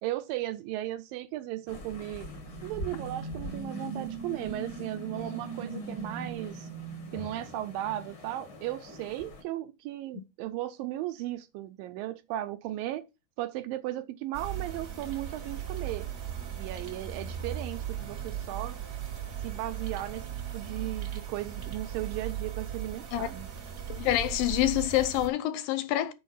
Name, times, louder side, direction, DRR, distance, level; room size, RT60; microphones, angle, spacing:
voice 1, 0.0-2.3 2.6-6.7 7.1-13.0 13.4-16.1 16.6-18.8 19.4-20.3 20.5-23.5, right 14 dB, 80° right, 2.2 m, -36 dB
sound 1, 1.7-9.4, left 2 dB, 45° left, 1.8 m, -45 dB
sound 2, 1.9-8.2, right 4 dB, 15° right, 0.8 m, -41 dB
sound 3, 14.3-25.3, right 9 dB, 50° right, 1.2 m, -37 dB
voice 2, 23.9-26.1, left 14 dB, 80° left, 2.2 m, -27 dB
6.4 x 5.3 x 7.0 m
omnidirectional pair, 4.3 m